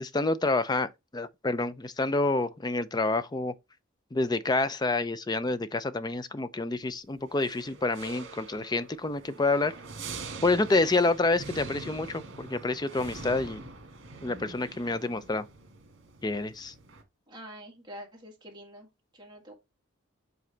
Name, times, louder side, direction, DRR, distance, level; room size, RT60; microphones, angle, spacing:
voice 1, 0.0-3.5 4.1-9.7 10.4-13.6 14.2-15.4 16.2-16.7, left 2 dB, 20° left, 0.4 m, -28 dB
sound 1, 7.3-17.0, right 3 dB, 65° right, 1.6 m, -44 dB
voice 2, 17.3-18.9 19.1-19.5, equal, 20° right, 1.6 m, -46 dB
7.5 x 4.0 x 3.3 m
head